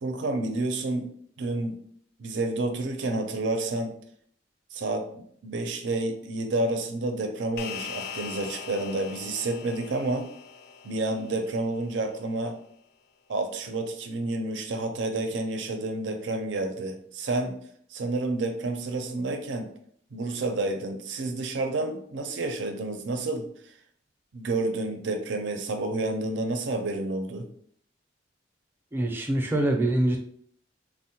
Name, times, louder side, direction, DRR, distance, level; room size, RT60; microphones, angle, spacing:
voice 1, 0.0-1.1 1.4-1.8 2.2-3.9 4.7-10.3 10.8-12.6 13.3-17.5 17.9-19.7 20.1-23.5 24.3-27.5, right 2 dB, 85° right, 6 dB, 0.5 m, -29 dB
sound 1, 7.6-12.2, left 7 dB, 60° left, 0.4 m, -41 dB
voice 2, 28.9-30.2, right 1 dB, 10° right, 2 dB, 0.4 m, -24 dB
3.5 x 2.1 x 2.8 m, 0.62 s
head